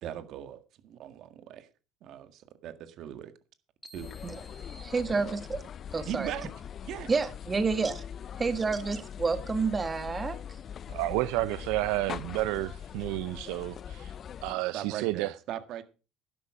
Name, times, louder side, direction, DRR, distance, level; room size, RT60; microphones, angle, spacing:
voice 1, 0.0-1.7 2.0-3.3 3.9-4.1 5.1-5.4 6.0-6.5 6.8-7.1 14.5-15.8, right 11 dB, 60° right, 1.8 m, -39 dB
sound 1, 3.8-5.8, equal, ahead, 3.0 m, -55 dB
sound 2, 3.9-14.6, left 8 dB, 45° left, 0.6 m, -42 dB
voice 2, 4.8-5.6 5.9-6.3 7.1-8.0 8.4-10.4, right 4 dB, 25° right, 1.7 m, -29 dB
voice 3, 10.9-14.2 14.4-15.3, right 18 dB, 75° right, 0.7 m, -31 dB
11.5 x 10.5 x 5.0 m
supercardioid pair, 85°, 0 cm